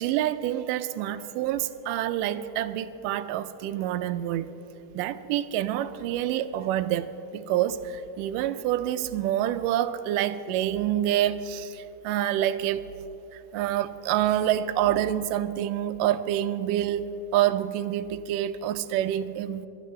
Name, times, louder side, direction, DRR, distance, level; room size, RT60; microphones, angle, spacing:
voice 1, 0.0-4.5 4.9-12.9 13.3-19.7, right 12 dB, 80° right, 2.0 m, -27 dB
28.5 x 12.5 x 3.2 m
omnidirectional pair, 4.1 m